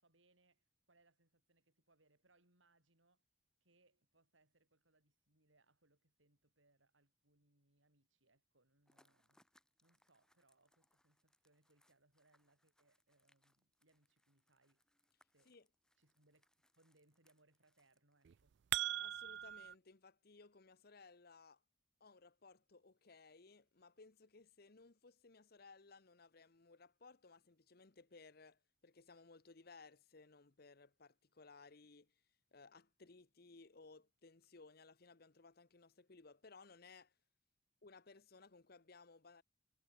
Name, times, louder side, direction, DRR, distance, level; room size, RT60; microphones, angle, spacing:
voice 1, 0.0-3.2 3.6-9.4 9.8-14.8 15.3-15.6 16.0-18.6, right 2 dB, 80° right, 6.3 m, -76 dB
sound 1, 8.8-18.6, left 1 dB, 5° left, 3.5 m, -78 dB
sound 2, 18.2-19.7, right 14 dB, 60° right, 0.4 m, -40 dB
voice 2, 19.0-21.6 22.0-32.2 32.5-37.1 37.8-39.4, left 4 dB, 55° left, 1.0 m, -61 dB
head